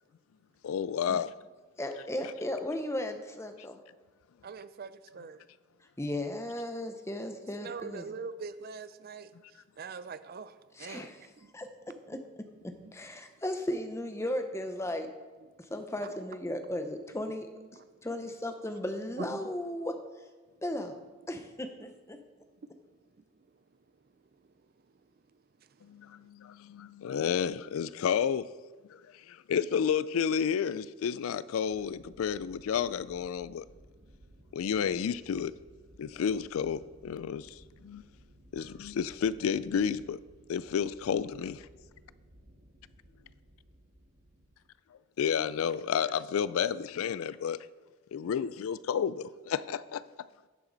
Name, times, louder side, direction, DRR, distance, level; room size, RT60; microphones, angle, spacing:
voice 1, 0.6-1.3 25.8-28.5 28.9-29.0 29.3-33.6 34.5-35.5 36.0-38.0 38.5-40.2 40.5-41.7 45.2-47.6 48.1-50.0, left 7 dB, 85° left, 0.3 m, -31 dB
voice 2, 1.8-3.8 6.0-8.1 10.8-11.2 11.5-11.7 12.1-12.2 12.9-15.1 15.7-17.5 18.0-20.0 20.6-20.9 21.3-22.2, left 1 dB, 15° left, 0.7 m, -35 dB
voice 3, 4.4-5.4 7.6-11.1 11.4-11.5 12.8-12.9 16.0-16.2 17.6-17.9 19.2-19.4 22.6-22.7 25.6-25.8, right 4 dB, 45° right, 0.4 m, -43 dB
sound 1, 31.7-44.7, right 1 dB, 75° right, 1.5 m, -58 dB
11.0 x 7.2 x 4.0 m
head